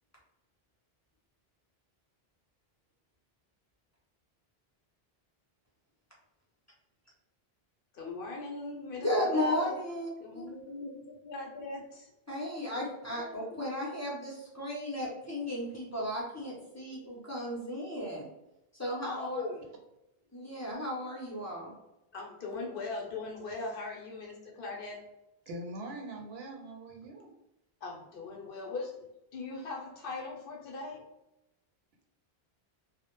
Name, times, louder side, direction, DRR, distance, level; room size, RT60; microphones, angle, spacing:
voice 1, 7.9-9.8 10.2-12.1 19.0-19.6 22.1-25.0 27.8-29.0 29.3-31.0, left 3 dB, 65° left, -1 dB, 0.7 m, -39 dB
voice 2, 9.0-10.4 12.3-18.3 18.7-19.4 20.3-21.7, left 1 dB, 20° left, -5 dB, 0.5 m, -34 dB
voice 3, 25.5-27.3, right 1 dB, 80° right, 1 dB, 0.8 m, -42 dB
2.1 x 2.0 x 2.8 m, 0.88 s
omnidirectional pair, 1.0 m